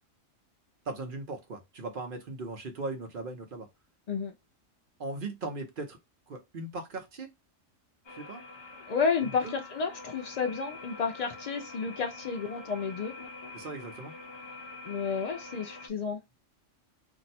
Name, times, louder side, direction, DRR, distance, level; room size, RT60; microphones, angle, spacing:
voice 1, 0.9-3.7 5.0-6.0 6.3-7.3 8.1-8.4 9.4-9.6 13.5-14.1, right 3 dB, 50° right, 0.8 m, -38 dB
sound 1, 8.0-15.9, left 3 dB, 30° left, 0.5 m, -46 dB
voice 2, 8.9-13.1 14.8-16.2, left 5 dB, 90° left, 0.3 m, -31 dB
2.6 x 2.1 x 4.0 m
omnidirectional pair, 1.3 m